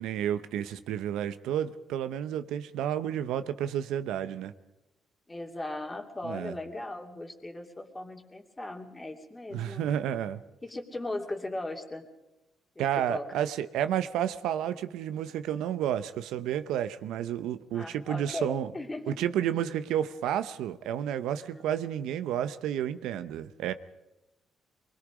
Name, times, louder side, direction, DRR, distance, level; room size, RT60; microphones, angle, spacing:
voice 1, 0.0-4.5 6.2-6.5 9.5-10.4 12.8-18.7 19.1-23.7, right 10 dB, 90° right, 12 dB, 0.8 m, -31 dB
voice 2, 5.3-9.9 10.6-12.1 12.7-13.4 17.7-19.1 21.5-21.7, left 2 dB, 20° left, 3 dB, 2.7 m, -38 dB
24.0 x 21.5 x 5.1 m, 0.97 s
cardioid pair, 90°, 0 cm